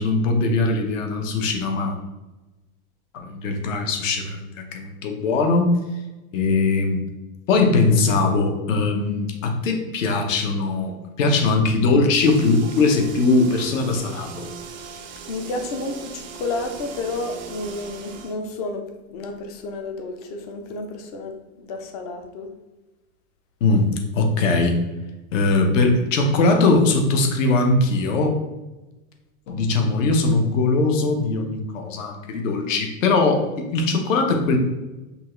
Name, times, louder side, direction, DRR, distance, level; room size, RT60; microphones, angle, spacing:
voice 1, 0.0-2.0 3.1-5.8 6.3-7.0 7.5-14.5 23.6-24.8 25.3-28.3 29.5-34.6, left 3 dB, 65° left, 3 dB, 1.0 m, -20 dB
sound 1, 12.2-18.4, right 5 dB, 35° right, 0.4 m, -39 dB
voice 2, 15.3-18.9 19.1-22.5, left 2 dB, 30° left, 5 dB, 0.4 m, -31 dB
5.5 x 2.4 x 3.1 m, 1.1 s
supercardioid pair, 160°, 41 cm